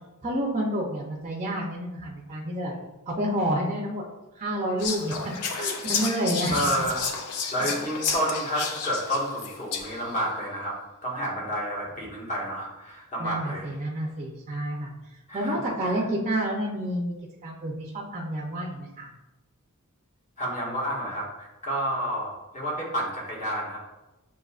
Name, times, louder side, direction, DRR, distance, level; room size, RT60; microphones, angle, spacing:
voice 1, 0.2-2.7 3.1-4.0 4.4-5.2 5.5-6.6 13.2-14.9 15.3-17.2 17.4-19.1, right 1 dB, 30° right, -3 dB, 0.6 m, -29 dB
Whispering, 4.8-10.1, left 5 dB, 90° left, 0.5 m, -31 dB
voice 2, 6.5-13.7 15.3-16.0 20.4-23.8, equal, 35° left, -5 dB, 1.5 m, -30 dB
6.6 x 2.8 x 2.4 m, 1.0 s
head